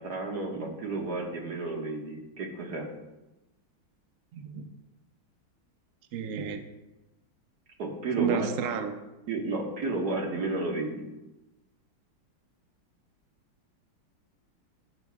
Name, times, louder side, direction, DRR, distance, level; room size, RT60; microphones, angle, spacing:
voice 1, 0.0-2.9 7.8-8.5 9.3-11.0, right 2 dB, 50° right, 0 dB, 2.0 m, -32 dB
voice 2, 4.3-4.6 6.1-6.6 8.2-8.9, right 7 dB, 75° right, 6 dB, 0.7 m, -31 dB
17.0 x 7.9 x 2.4 m, 1.0 s
omnidirectional pair, 2.3 m